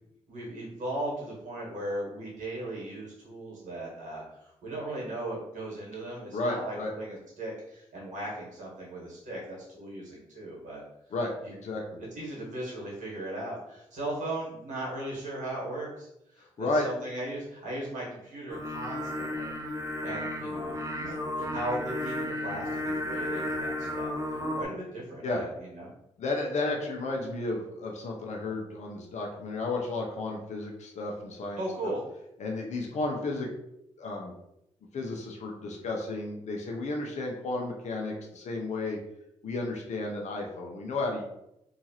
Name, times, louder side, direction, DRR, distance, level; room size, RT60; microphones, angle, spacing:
voice 1, 0.3-10.8 11.4-11.5 12.0-19.6 20.0-24.1 24.5-25.9 31.6-32.0, right 1 dB, 75° right, -4 dB, 1.4 m, -37 dB
voice 2, 6.3-6.9 11.1-11.3 11.6-12.0 16.6-16.9 25.2-25.4 26.2-31.9 32.4-33.5 34.0-34.3 34.9-39.0 39.4-41.2, left 2 dB, 65° left, 0 dB, 0.6 m, -33 dB
Singing, 18.5-24.7, left 1 dB, 25° right, 0.7 m, -33 dB
2.8 x 2.4 x 2.9 m, 0.82 s
supercardioid pair, 50°, 13 cm